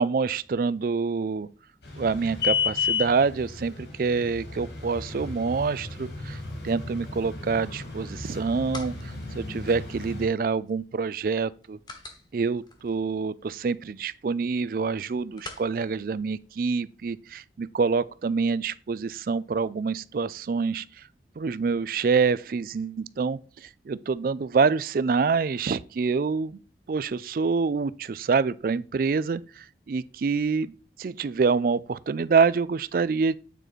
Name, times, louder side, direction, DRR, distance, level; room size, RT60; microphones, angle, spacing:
voice 1, 0.0-1.5 1.9-6.4 6.6-11.8 12.3-20.9 21.4-26.6 26.9-30.7 31.0-33.4, right 5 dB, 50° right, 0.3 m, -26 dB
sound 1, 1.8-10.3, left 6 dB, 70° left, 2.3 m, -33 dB
sound 2, 8.1-17.0, left 3 dB, 25° left, 1.1 m, -49 dB
9.0 x 4.5 x 4.1 m
head